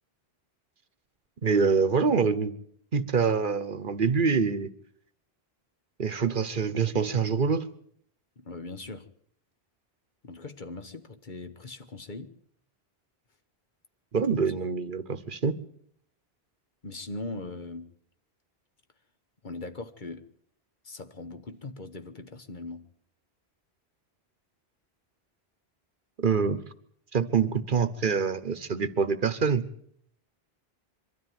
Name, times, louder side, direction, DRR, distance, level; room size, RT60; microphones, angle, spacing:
voice 1, 1.4-2.5 2.9-4.7 6.0-7.6 14.1-15.5 26.2-26.6 27.1-29.6, right 5 dB, 55° right, 1.1 m, -25 dB
voice 2, 8.4-9.1 10.2-12.3 14.4-14.5 16.8-17.9 19.4-20.3 20.8-22.9, left 3 dB, 50° left, 1.4 m, -40 dB
23.5 x 13.0 x 9.3 m
omnidirectional pair, 1.0 m